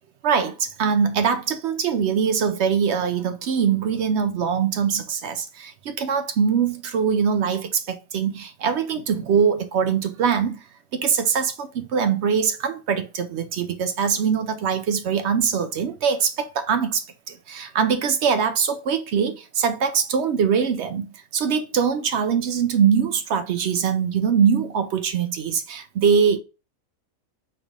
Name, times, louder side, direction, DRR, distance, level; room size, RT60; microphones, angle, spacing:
voice 1, 0.2-10.6 10.9-26.4, right 7 dB, 65° right, 0.7 m, -22 dB
4.2 x 3.4 x 3.6 m
omnidirectional pair, 1.5 m